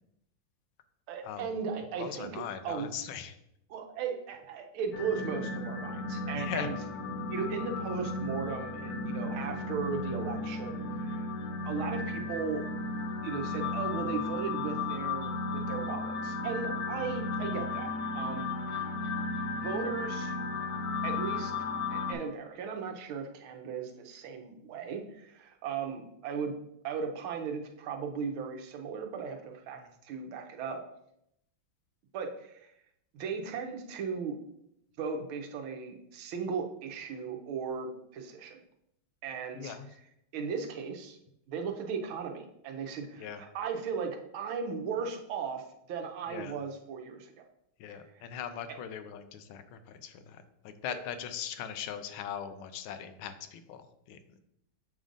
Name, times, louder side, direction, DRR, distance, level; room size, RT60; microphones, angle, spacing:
voice 1, 1.1-2.9 3.7-6.7 7.3-11.3 11.6-12.6 13.2-18.5 19.5-20.3 21.0-21.5 21.9-26.5 26.8-30.8 32.1-32.7 33.1-34.4 35.0-38.6 39.2-39.8 40.3-41.2 41.5-47.3 47.9-48.1 50.9-51.0, right 6 dB, 90° right, 3 dB, 1.6 m, -37 dB
voice 2, 2.0-3.4 6.3-6.7 29.8-29.9 39.5-39.9 43.2-43.4 46.3-46.6 47.8-54.4, left 8 dB, 85° left, 9 dB, 1.4 m, -40 dB
sound 1, 4.9-22.1, left 3 dB, 65° left, 1.0 m, -34 dB
7.3 x 2.5 x 5.2 m, 0.78 s
omnidirectional pair, 2.2 m